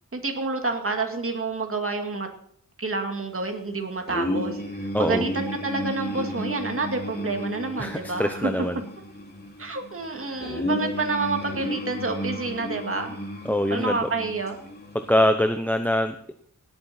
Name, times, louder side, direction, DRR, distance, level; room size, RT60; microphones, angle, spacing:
voice 1, 0.1-2.3 2.8-8.5 9.6-13.2 13.7-14.6, right 3 dB, 45° right, 4 dB, 2.2 m, -29 dB
sound 1, 4.1-15.3, left 1 dB, 30° left, 3.2 m, -33 dB
voice 2, 7.8-8.8 10.1-10.6 13.4-14.1 14.9-16.3, left 1 dB, 5° left, 8 dB, 0.8 m, -24 dB
17.5 x 8.8 x 4.3 m, 0.66 s
wide cardioid pair, 90°, 32 cm